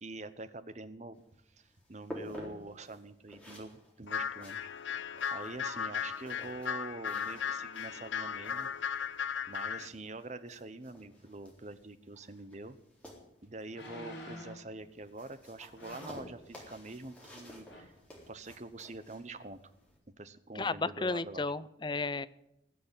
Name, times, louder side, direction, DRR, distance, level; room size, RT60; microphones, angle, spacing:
voice 1, 0.0-1.2 1.5-4.7 5.3-8.7 9.5-12.8 13.4-17.9 18.3-19.6 20.2-21.4, right 2 dB, 40° right, 12 dB, 0.9 m, -45 dB
sound 1, 1.1-20.0, equal, 5° left, 4.0 m, -53 dB
sound 2, 4.1-9.9, left 8 dB, 85° left, 0.8 m, -36 dB
sound 3, 12.7-12.8 13.7-14.7 15.8-16.2 17.2-17.4 17.6-18.0 18.5-18.6, left 1 dB, 65° left, 5.9 m, -48 dB
voice 2, 20.5-22.3, left 3 dB, 25° left, 15 dB, 0.5 m, -33 dB
20.0 x 6.8 x 10.0 m, 0.84 s
head